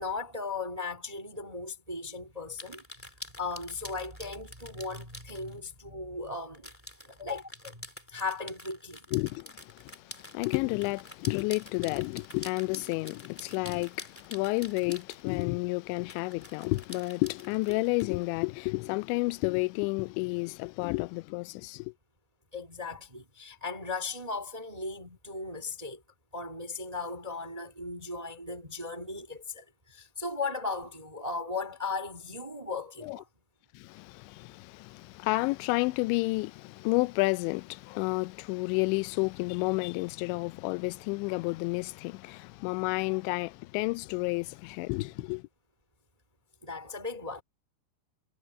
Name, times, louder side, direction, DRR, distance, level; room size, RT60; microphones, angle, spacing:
voice 1, 0.0-6.7 7.0-9.1 22.5-26.0 26.3-33.2 46.6-47.4, left 3 dB, 15° right, 1.5 m, -37 dB
sound 1, 2.6-5.5 6.5-15.5 16.1-18.0, left 1 dB, 10° left, 0.7 m, -47 dB
voice 2, 9.1-21.9 33.0-33.2 33.7-45.4, left 25 dB, 90° left, 2.9 m, -31 dB
omnidirectional pair, 5.1 m